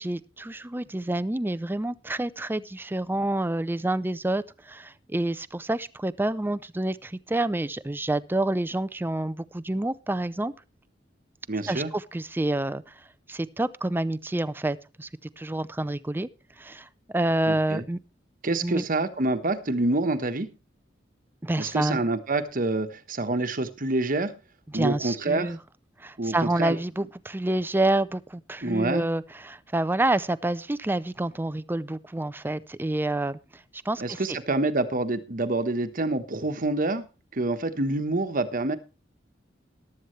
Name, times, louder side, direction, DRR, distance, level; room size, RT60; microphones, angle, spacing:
voice 1, 0.0-10.5 11.7-15.1 15.4-16.3 16.6-16.9 17.1-18.0 18.6-18.8 21.4-22.0 24.7-25.6 26.0-34.4, right 1 dB, 10° right, 0.5 m, -28 dB
voice 2, 11.5-11.9 17.5-17.8 18.4-20.5 21.6-24.3 24.7-25.6 26.2-26.8 28.6-29.1 34.0-37.0 37.3-38.8, right 2 dB, 50° right, 1.2 m, -27 dB
14.5 x 12.0 x 3.2 m
head